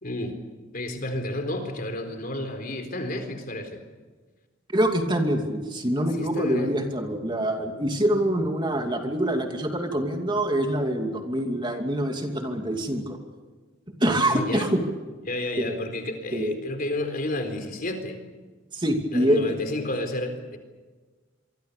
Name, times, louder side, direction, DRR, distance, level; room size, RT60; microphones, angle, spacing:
voice 1, 0.0-0.4 0.7-3.8 6.1-6.7 14.3-14.7 15.3-18.2 19.1-20.6, left 1 dB, 45° left, 7 dB, 4.0 m, -31 dB
voice 2, 4.7-13.2 14.0-14.8 15.6-15.7 16.3-16.5 18.7-19.5, right 1 dB, 25° right, 4 dB, 2.7 m, -25 dB
27.0 x 24.0 x 6.9 m, 1.3 s
head